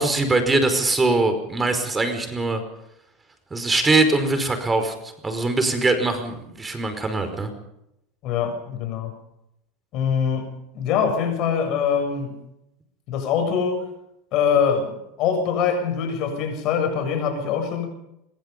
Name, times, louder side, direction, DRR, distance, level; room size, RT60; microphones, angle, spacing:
voice 1, 0.0-2.6 3.5-7.5, right 2 dB, 20° right, 8 dB, 5.0 m, -22 dB
voice 2, 8.2-9.1 9.9-12.4 13.1-13.8 14.3-17.9, left 7 dB, 55° left, 7 dB, 7.2 m, -23 dB
25.5 x 22.5 x 5.4 m, 0.83 s
hypercardioid pair, 90°, 0 cm